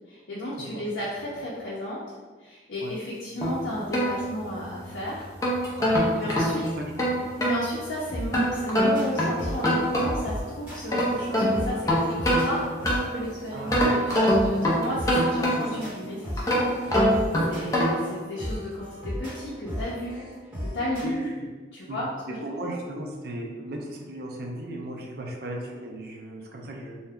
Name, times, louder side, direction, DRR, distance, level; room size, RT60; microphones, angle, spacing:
voice 1, 0.1-2.0 2.4-5.3 6.1-6.6 7.4-12.6 13.1-20.2 20.6-21.3 21.7-22.1 22.6-22.7, equal, 70° left, -6 dB, 0.5 m, -34 dB
sound 1, 3.4-4.8 5.2-7.6 8.3-10.4 10.7-13.2 13.7-15.9 16.4-18.1, equal, 15° left, 0.5 m, -24 dB
sound 2, 8.1-21.0, equal, 10° right, 1.1 m, -36 dB
voice 2, 13.5-13.9 15.4-15.9 21.0-21.4 21.9-22.0 22.4-27.0, right 1 dB, 55° right, 0 dB, 0.4 m, -36 dB
2.6 x 2.2 x 3.4 m, 1.4 s
head